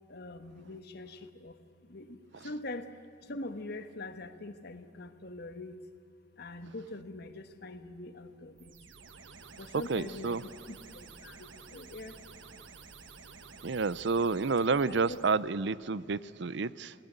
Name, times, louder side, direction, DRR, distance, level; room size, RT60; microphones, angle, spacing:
voice 1, 0.1-5.8 6.4-8.7 9.5-12.2 14.9-15.2 15.9-16.1, left 2 dB, 55° left, 9 dB, 1.4 m, -44 dB
sound 1, 8.6-15.4, right 4 dB, 80° right, 1.5 m, -51 dB
voice 2, 9.9-10.4 13.6-16.9, right 4 dB, 65° right, 18 dB, 0.6 m, -29 dB
29.0 x 19.0 x 8.1 m, 2.7 s
head